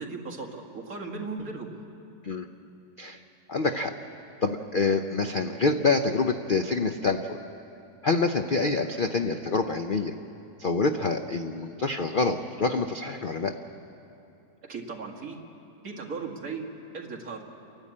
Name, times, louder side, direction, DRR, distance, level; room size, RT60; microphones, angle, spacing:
voice 1, 0.0-1.8 14.6-15.4 15.8-16.7 16.9-17.4, right 4 dB, 55° right, 0 dB, 2.4 m, -37 dB
voice 2, 3.5-3.9 4.4-7.4 8.0-10.1 10.6-13.5, left 3 dB, 85° left, 6 dB, 0.4 m, -26 dB
29.5 x 12.0 x 8.5 m, 2.9 s
omnidirectional pair, 1.9 m